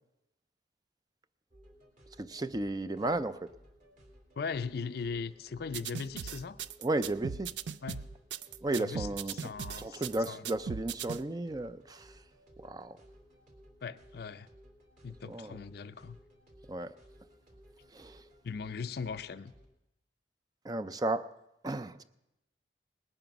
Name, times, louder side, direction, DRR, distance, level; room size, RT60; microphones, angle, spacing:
sound 1, 1.5-19.7, equal, 45° right, 3.0 m, -59 dB
voice 1, 2.2-3.5 6.8-7.5 8.6-9.4 9.8-12.1 12.6-13.0 15.3-15.6 16.7-16.9 17.9-18.2 20.6-21.3 21.6-22.0, right 2 dB, 20° right, 0.4 m, -34 dB
voice 2, 4.4-6.6 7.8-8.1 8.8-9.1 9.4-10.5 13.8-14.5 15.0-16.2 18.4-19.5, left 5 dB, 60° left, 0.5 m, -39 dB
sound 2, 5.7-11.2, right 7 dB, 80° right, 0.4 m, -38 dB
19.5 x 9.1 x 5.9 m
head